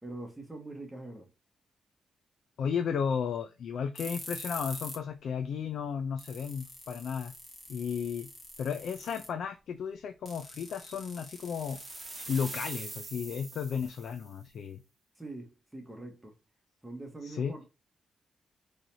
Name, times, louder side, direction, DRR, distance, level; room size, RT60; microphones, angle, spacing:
voice 1, 0.0-1.3 15.2-16.3 16.8-17.6, right 2 dB, 10° right, 1.3 m, -43 dB
voice 2, 2.6-7.3 7.7-8.3 8.6-11.8 12.3-14.8 17.2-17.5, left 7 dB, 75° left, 0.4 m, -34 dB
sound 1, 4.0-5.1 5.4-5.5 5.9-6.0 6.2-9.4 10.3-13.4, left 1 dB, 20° left, 1.6 m, -45 dB
sound 2, 11.3-14.3, right 3 dB, 30° right, 0.8 m, -44 dB
3.9 x 3.2 x 2.7 m
cardioid pair, 110°, 0 cm